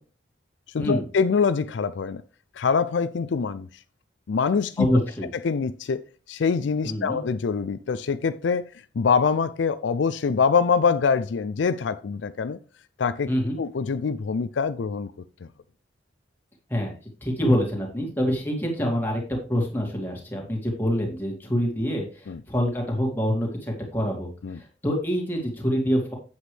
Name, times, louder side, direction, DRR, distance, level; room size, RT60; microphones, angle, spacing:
voice 1, 0.7-2.2 2.6-3.7 4.3-4.9 5.4-6.0 6.3-8.7 9.0-12.6 13.0-13.3 13.6-15.1 22.3-22.4 24.4-24.6, left 5 dB, 80° left, 0.4 m, -24 dB
voice 2, 4.8-5.3 6.8-7.2 13.3-13.6 16.7-16.9 17.2-26.1, equal, 10° left, 2.3 m, -26 dB
8.0 x 7.9 x 3.4 m
head